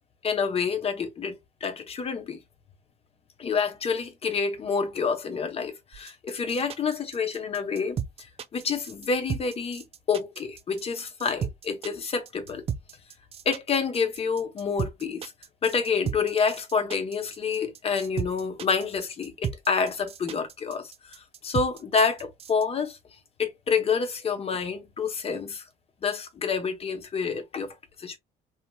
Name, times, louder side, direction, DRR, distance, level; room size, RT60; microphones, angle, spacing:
voice 1, 0.2-2.4 3.4-8.0 8.5-12.6 13.5-15.3 15.6-23.0 23.4-25.6 26.0-28.2, left 5 dB, 35° left, 0.8 m, -28 dB
sound 1, 5.9-22.6, right 8 dB, 35° right, 0.4 m, -34 dB
2.9 x 2.8 x 2.2 m
cardioid pair, 110°, 17 cm